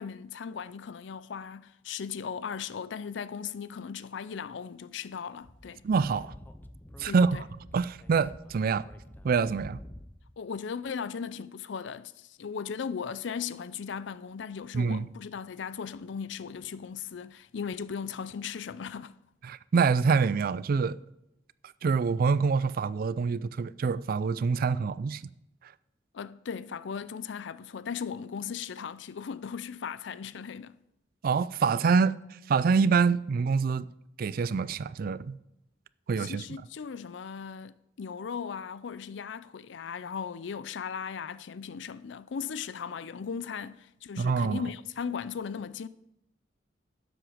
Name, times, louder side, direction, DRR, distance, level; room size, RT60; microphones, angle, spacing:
voice 1, 0.0-5.8 7.0-7.4 10.4-19.1 26.1-30.8 36.2-45.9, left 6 dB, 65° left, 0.4 m, -37 dB
Speech / Wind, 5.4-10.3, left 1 dB, 10° left, 0.5 m, -49 dB
voice 2, 5.8-6.3 7.0-7.4 7.7-8.8 9.2-9.8 14.7-15.1 19.4-21.0 21.8-25.2 31.2-32.2 32.5-33.9 34.2-35.4 36.1-36.4 44.2-44.6, right 5 dB, 50° right, 0.3 m, -26 dB
11.5 x 7.8 x 5.0 m
head